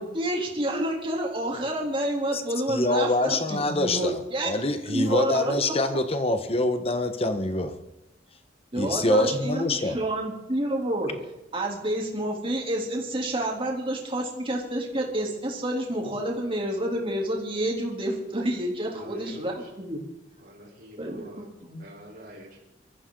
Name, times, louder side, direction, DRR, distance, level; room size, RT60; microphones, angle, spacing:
voice 1, 0.0-4.5 4.9-5.8 8.7-11.2 11.5-19.5 19.8-20.0 21.0-21.8, right 1 dB, 30° right, -1 dB, 3.4 m, -29 dB
voice 2, 2.7-4.2 4.4-7.7 8.8-10.0, left 2 dB, 35° left, 8 dB, 1.4 m, -25 dB
voice 3, 18.9-19.7 20.4-21.5 21.8-22.6, equal, 60° right, -6 dB, 3.9 m, -45 dB
23.0 x 14.5 x 4.0 m, 0.91 s
head